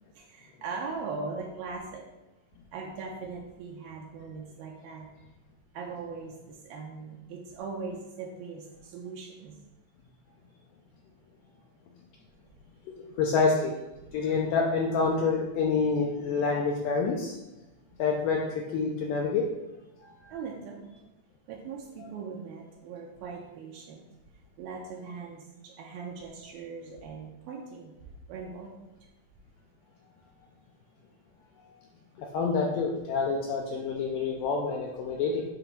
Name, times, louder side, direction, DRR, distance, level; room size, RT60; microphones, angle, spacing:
voice 1, 0.2-2.1 2.7-5.1 5.7-9.6 20.3-20.8 21.5-24.0 24.6-27.9 28.3-28.8, right 4 dB, 80° right, -1 dB, 2.4 m, -40 dB
voice 2, 12.9-13.7 14.1-17.3 18.0-19.5 20.2-20.3 32.2-35.4, left 4 dB, 80° left, -1 dB, 2.0 m, -27 dB
7.8 x 3.0 x 5.8 m, 1.0 s
omnidirectional pair, 4.4 m